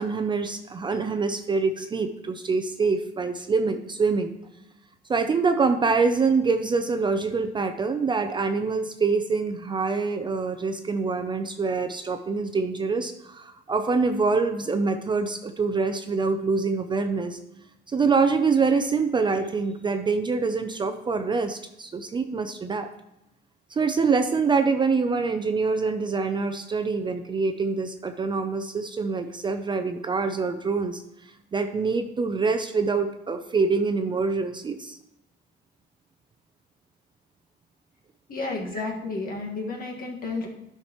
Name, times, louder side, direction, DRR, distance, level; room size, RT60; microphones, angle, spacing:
voice 1, 0.0-4.3 5.1-17.4 17.9-22.9 23.7-31.0 31.5-35.0 38.8-38.9, right 4 dB, 25° right, 8 dB, 0.4 m, -25 dB
voice 2, 38.3-40.5, left 3 dB, 50° left, 0 dB, 1.7 m, -31 dB
12.5 x 5.8 x 3.0 m, 0.87 s
cardioid pair, 145°, 19 cm